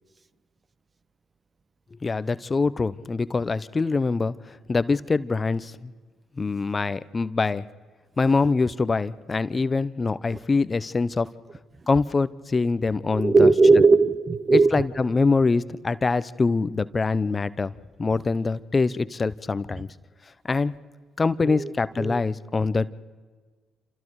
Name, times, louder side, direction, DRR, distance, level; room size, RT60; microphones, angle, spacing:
voice 1, 2.0-5.9 6.4-7.6 8.2-11.3 11.9-13.5 14.5-17.7 18.0-19.9 20.5-20.7 21.2-22.9, left 4 dB, 35° left, 15 dB, 0.9 m, -24 dB
voice 2, 13.1-14.8 15.2-15.3 21.4-21.7 22.0-22.2, right 3 dB, 35° right, 15 dB, 1.1 m, -18 dB
28.0 x 26.5 x 4.9 m, 1.4 s
hypercardioid pair, 55°, 0 cm